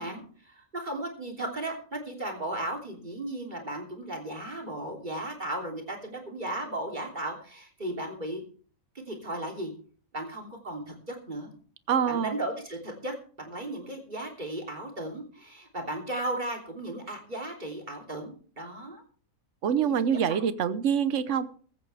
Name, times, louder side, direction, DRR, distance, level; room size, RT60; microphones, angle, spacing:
voice 1, 0.0-8.4 9.1-9.7 10.1-11.5 12.1-19.0 19.8-19.9 20.3-20.4, right 1 dB, 35° right, 2 dB, 3.3 m, -36 dB
voice 2, 11.9-12.4 19.6-21.4, right 8 dB, 60° right, 14 dB, 1.2 m, -25 dB
15.5 x 14.0 x 3.4 m, 0.43 s
omnidirectional pair, 1.5 m